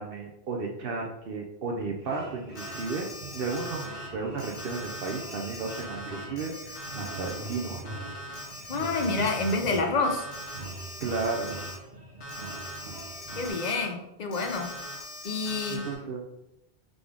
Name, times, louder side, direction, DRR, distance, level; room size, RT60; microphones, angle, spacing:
voice 1, 0.0-7.8 11.0-11.5 15.7-16.2, right 4 dB, 65° right, 1 dB, 0.7 m, -34 dB
sound 1, 2.0-13.5, right 2 dB, 45° right, 1.1 m, -43 dB
Alarm, 2.6-4.1 4.4-9.8 10.0-11.8 12.2-13.9 14.3-16.0, equal, 75° left, 1.3 m, -40 dB
voice 2, 8.7-10.3 13.4-14.7 15.2-15.9, left 3 dB, 45° left, 3 dB, 0.6 m, -28 dB
3.8 x 3.5 x 3.5 m, 0.89 s
omnidirectional pair, 1.1 m